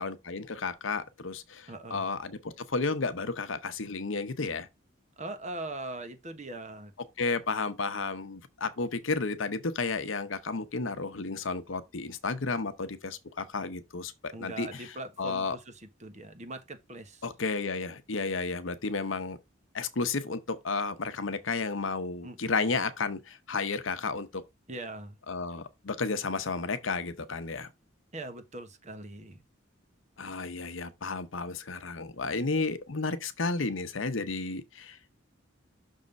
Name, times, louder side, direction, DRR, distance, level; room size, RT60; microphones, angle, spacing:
voice 1, 0.0-4.7 7.2-14.9 15.2-15.6 17.2-19.4 19.7-24.4 25.3-27.7 30.2-35.0, left 4 dB, 75° left, 0.9 m, -32 dB
voice 2, 1.7-2.1 5.2-6.9 14.3-17.2 22.2-22.6 24.7-25.2 28.1-29.4, right 2 dB, 35° right, 1.2 m, -41 dB
6.3 x 3.7 x 5.2 m
head